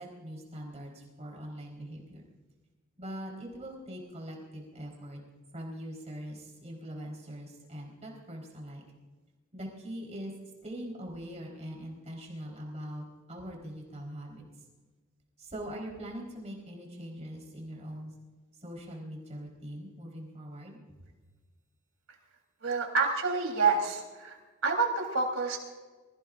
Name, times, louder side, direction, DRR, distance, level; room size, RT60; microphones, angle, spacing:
voice 1, 0.0-2.2 3.0-5.2 5.5-8.8 9.5-10.3 10.6-14.4 15.4-18.1 18.6-20.8, equal, 30° right, -1 dB, 4.1 m, -42 dB
voice 2, 22.6-24.4 24.6-25.6, right 4 dB, 65° right, 1 dB, 3.6 m, -28 dB
25.5 x 18.0 x 2.5 m, 1.3 s
head